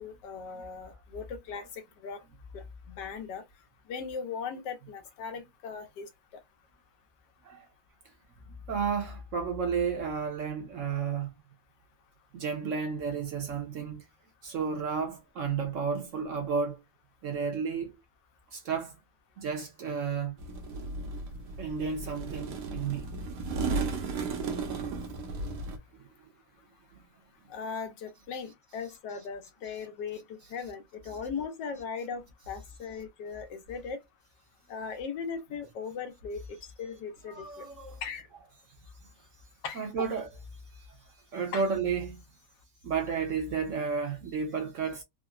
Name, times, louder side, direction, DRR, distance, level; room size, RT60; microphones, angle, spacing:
voice 1, 0.0-1.7 2.0-2.2 2.5-2.6 2.9-3.4 3.9-6.1 27.5-30.2 30.5-34.0 34.7-37.6 38.0-38.3 39.6-40.1 41.5-41.6, left 5 dB, 85° left, 1.3 m, -38 dB
voice 2, 8.5-11.3 12.3-14.0 14.4-16.8 17.2-18.0 18.5-18.9 19.4-20.4 21.6-23.1 25.9-26.0 37.2-38.0 39.7-40.3 40.7-41.0 41.3-42.2 42.8-45.0, right 5 dB, 60° right, 0.9 m, -32 dB
sound 1, 20.4-25.8, right 3 dB, 75° right, 1.3 m, -35 dB
3.7 x 2.1 x 2.3 m
omnidirectional pair, 1.8 m